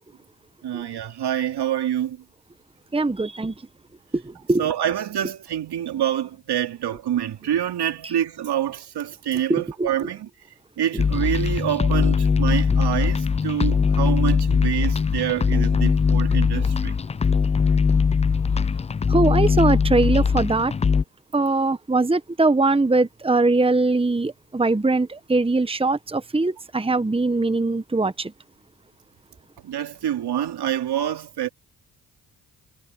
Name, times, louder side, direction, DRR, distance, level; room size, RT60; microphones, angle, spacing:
voice 1, 0.6-2.2 4.6-10.3 10.8-16.9 29.6-31.5, right 10 dB, 75° right, 3.0 m, -26 dB
voice 2, 2.9-3.5 4.5-4.6 9.8-9.9 19.1-20.7 21.3-28.3, right 3 dB, 15° right, 1.2 m, -21 dB
sound 1, 11.0-21.0, left 5 dB, 20° left, 0.3 m, -20 dB
supercardioid pair, 45°, 40 cm